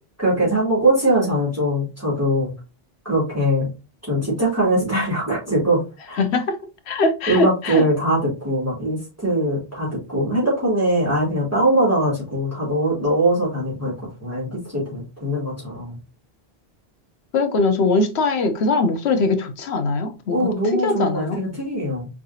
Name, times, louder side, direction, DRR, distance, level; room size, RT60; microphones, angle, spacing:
voice 1, 0.2-2.5 3.0-3.7 4.0-5.8 6.1-6.2 7.3-16.0 20.3-22.1, right 1 dB, 15° right, 2.6 m, -21 dB
voice 2, 6.2-6.6 6.9-7.9 17.3-20.5 20.8-21.4, left 3 dB, 85° left, 1.0 m, -21 dB
4.7 x 3.7 x 2.7 m
omnidirectional pair, 1.1 m